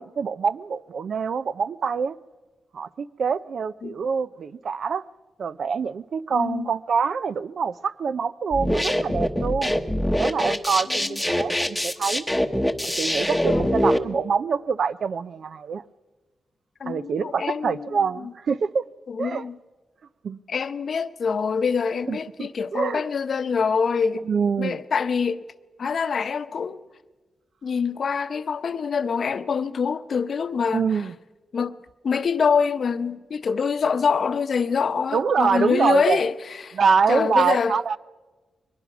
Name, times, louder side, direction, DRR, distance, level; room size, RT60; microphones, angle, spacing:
voice 1, 0.0-2.2 2.7-5.0 5.4-9.8 10.2-12.2 12.8-15.8 16.8-18.8 19.2-19.4 20.2-20.4 22.1-23.0 24.3-24.8 30.7-31.1 35.1-36.2 36.7-38.0, right 6 dB, 65° right, 0.5 m, -25 dB
voice 2, 6.3-6.7 10.9-11.2 13.5-13.7 16.8-18.3 19.1-19.6 20.5-24.3 24.6-25.5 25.8-26.8 27.6-31.0 31.5-31.8 32.0-36.8 37.1-37.7, left 6 dB, 60° left, 0.8 m, -25 dB
sound 1, 8.5-14.0, equal, 5° left, 1.0 m, -23 dB
22.5 x 19.5 x 6.0 m
cardioid pair, 85°, 0 cm